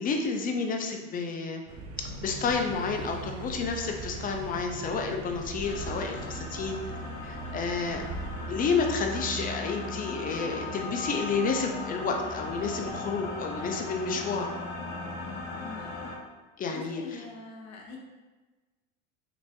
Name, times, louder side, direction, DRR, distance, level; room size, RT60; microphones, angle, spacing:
voice 1, 0.0-1.6 2.0-6.8 7.2-8.0 8.5-14.5 16.6-17.2, left 4 dB, 20° left, 3 dB, 0.4 m, -30 dB
sound 1, 1.7-9.4, right 2 dB, 35° right, 0.6 m, -43 dB
sound 2, 2.0-13.3, right 3 dB, 80° right, 0.8 m, -42 dB
sound 3, 5.6-16.1, left 3 dB, 65° left, 1.1 m, -38 dB
voice 2, 15.6-15.9 16.7-18.0, left 3 dB, 40° left, 0 dB, 0.8 m, -44 dB
3.4 x 2.9 x 2.7 m, 1.2 s
hypercardioid pair, 85°, 41 cm